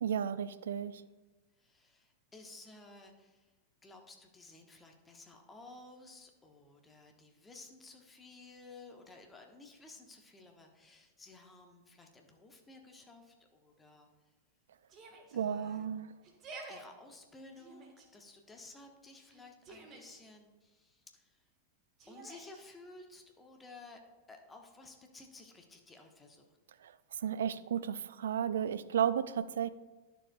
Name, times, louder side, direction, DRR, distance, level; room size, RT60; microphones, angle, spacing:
voice 1, 0.0-1.0 15.3-16.1 26.8-26.9 27.2-29.7, right 8 dB, 65° right, 15 dB, 0.3 m, -33 dB
voice 2, 1.6-3.5 3.8-14.1 15.3-16.0 16.7-21.4 22.1-24.0 24.3-26.5, left 3 dB, 15° left, 3 dB, 1.2 m, -55 dB
Yell, 14.9-15.4 16.2-16.8 17.5-18.1 19.2-20.2 22.0-22.6, right 3 dB, 35° right, 1.4 m, -50 dB
11.5 x 6.8 x 2.3 m, 1.2 s
figure-of-eight pair, 90°, 0 cm